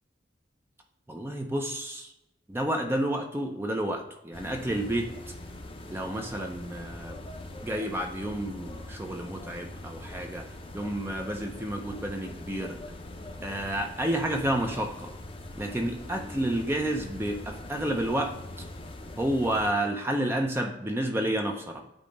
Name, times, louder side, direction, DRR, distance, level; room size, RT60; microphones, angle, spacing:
voice 1, 1.1-2.1 2.5-5.1 5.9-7.2 7.6-10.5 10.7-12.8 13.4-15.1 15.6-18.3 19.2-21.8, right 1 dB, 10° right, 2 dB, 0.6 m, -30 dB
sound 1, 4.3-19.7, left 1 dB, 30° left, 0.7 m, -42 dB
8.7 x 2.9 x 5.2 m, 0.89 s
head